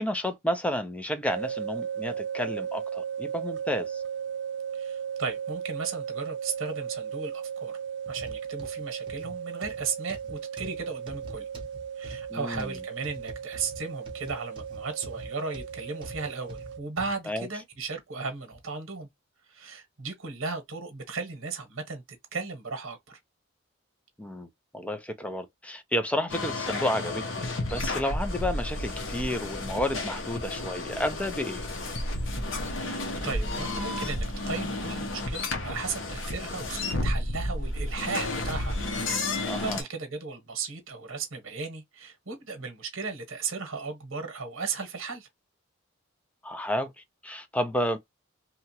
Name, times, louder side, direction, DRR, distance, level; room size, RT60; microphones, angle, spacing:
voice 1, 0.0-4.0 12.3-12.7 17.3-17.5 24.2-31.6 39.5-39.8 46.4-48.0, left 1 dB, 5° left, 0.4 m, -31 dB
sound 1, 1.3-16.8, right 8 dB, 55° right, 0.3 m, -36 dB
voice 2, 4.7-7.8 8.1-11.5 12.0-19.1 19.5-22.0 22.3-23.2 32.7-45.3, right 4 dB, 80° right, 1.0 m, -36 dB
sound 2, 8.1-17.2 17.7-17.9 18.5-18.6, equal, 25° right, 0.8 m, -45 dB
sound 3, 26.3-39.8, left 2 dB, 65° left, 0.8 m, -32 dB
2.9 x 2.3 x 2.8 m
head